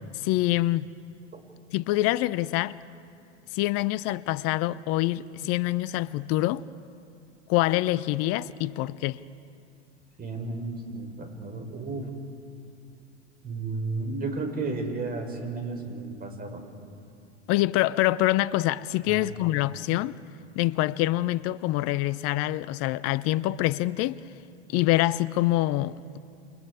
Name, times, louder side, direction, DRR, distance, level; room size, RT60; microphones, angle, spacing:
voice 1, 0.1-0.9 1.7-2.8 3.5-6.6 7.5-9.2 17.5-20.1 20.5-24.2 24.7-26.2, left 16 dB, 45° left, 0.6 m, -25 dB
voice 2, 10.2-12.1 13.4-16.6 19.2-19.3, right 3 dB, 25° right, 5.4 m, -33 dB
29.0 x 28.5 x 4.9 m
hypercardioid pair, 85°, 34 cm